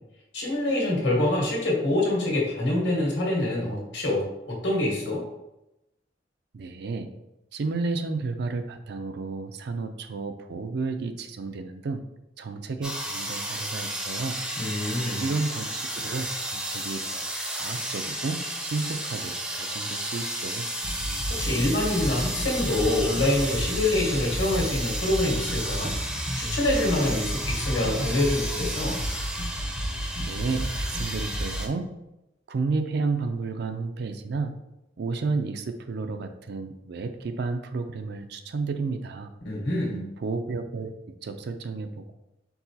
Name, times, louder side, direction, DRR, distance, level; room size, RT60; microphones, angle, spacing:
voice 1, 0.3-5.2 14.5-15.3 21.3-25.9 26.4-29.0 39.4-40.0, left 1 dB, 70° left, -3 dB, 1.5 m, -26 dB
voice 2, 6.5-7.1 7.5-12.0 12.4-14.4 15.2-17.3 17.5-20.7 30.2-31.9 32.5-34.5 35.0-39.3 40.2-40.9 41.2-42.1, right 3 dB, 60° right, 7 dB, 0.4 m, -31 dB
sound 1, 12.8-31.7, right 1 dB, 5° right, 0.5 m, -33 dB
sound 2, 20.8-31.6, equal, 30° left, 0.7 m, -32 dB
4.7 x 3.8 x 2.8 m, 0.91 s
head